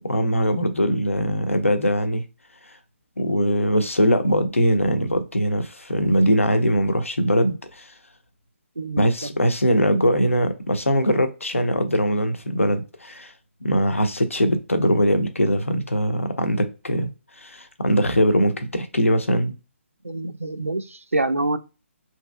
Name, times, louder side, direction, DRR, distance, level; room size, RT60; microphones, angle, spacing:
voice 1, 0.0-2.3 3.2-7.9 9.0-13.3 13.6-17.1 17.4-19.6, equal, 75° left, 0.7 m, -21 dB
voice 2, 8.8-9.4 20.0-21.6, right 2 dB, 85° right, 0.4 m, -26 dB
2.9 x 2.7 x 2.2 m
figure-of-eight pair, 140°, 7 cm